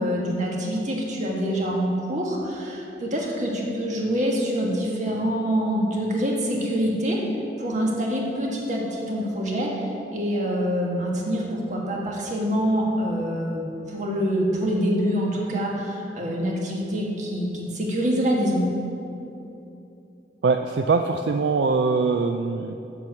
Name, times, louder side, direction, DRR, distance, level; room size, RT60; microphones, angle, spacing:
voice 1, 0.0-7.2 7.6-18.7, equal, 45° right, -2 dB, 1.5 m, -25 dB
voice 2, 20.4-22.7, right 4 dB, 70° right, 6 dB, 0.3 m, -22 dB
7.4 x 6.3 x 7.0 m, 2.9 s
head